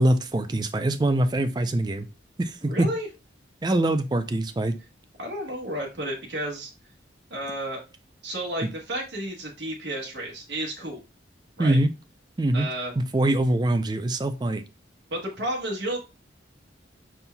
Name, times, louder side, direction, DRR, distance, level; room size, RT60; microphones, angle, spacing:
voice 1, 0.0-2.1 2.4-2.9 3.6-4.7 11.6-11.9 12.4-12.7 13.0-14.6, right 1 dB, 20° right, 9 dB, 0.4 m, -23 dB
voice 2, 2.6-3.1 5.2-6.7 7.3-7.8 8.2-11.0 11.6-11.8 12.5-12.9 15.1-16.0, right 1 dB, 70° right, -1 dB, 1.2 m, -32 dB
5.4 x 4.3 x 2.2 m, 0.29 s
head